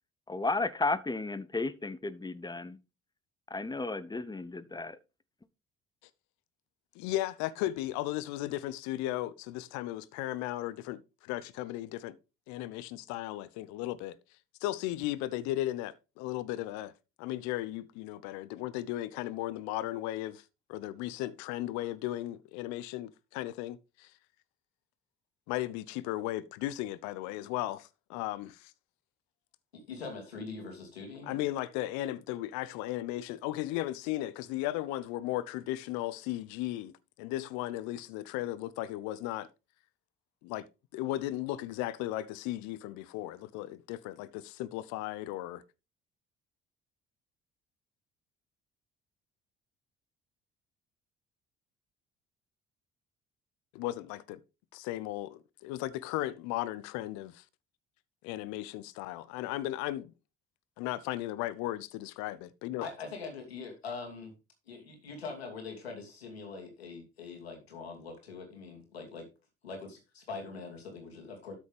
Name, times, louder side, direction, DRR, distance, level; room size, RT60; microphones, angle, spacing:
voice 1, 0.3-2.8 3.5-5.0, left 3 dB, 15° left, 1.1 m, -33 dB
voice 2, 6.9-12.1 12.5-14.2 14.6-16.9 17.2-20.4 20.7-24.1 25.5-28.7 31.2-36.9 37.2-39.5 40.4-40.7 40.9-45.6 53.7-54.4 54.7-57.4 58.2-60.1 60.8-62.9, left 15 dB, 65° left, 0.9 m, -36 dB
voice 3, 29.7-31.4 62.8-64.3 64.7-69.3 69.6-71.6, left 4 dB, 85° left, 2.7 m, -43 dB
13.0 x 6.3 x 3.5 m
figure-of-eight pair, 50°, 30 cm